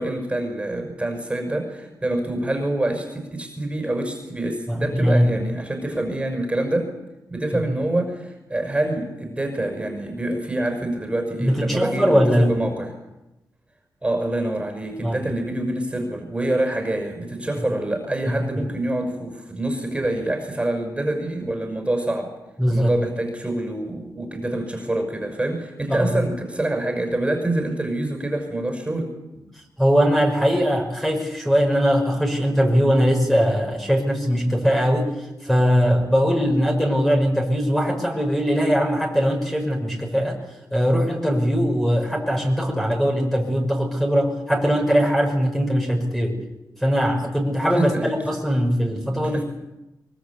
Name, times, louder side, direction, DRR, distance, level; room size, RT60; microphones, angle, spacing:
voice 1, 0.0-6.9 7.3-12.9 14.0-22.3 22.7-29.1 47.8-48.1 49.1-49.4, right 1 dB, 15° right, 4 dB, 5.6 m, -26 dB
voice 2, 4.7-5.3 7.5-7.6 11.4-12.5 15.0-15.2 18.3-18.6 22.6-22.9 25.9-26.1 29.8-35.1 35.4-40.4 40.7-46.4 46.8-49.4, equal, 5° left, 0 dB, 5.6 m, -20 dB
24.0 x 22.5 x 8.5 m, 0.96 s
wide cardioid pair, 115°, 7 cm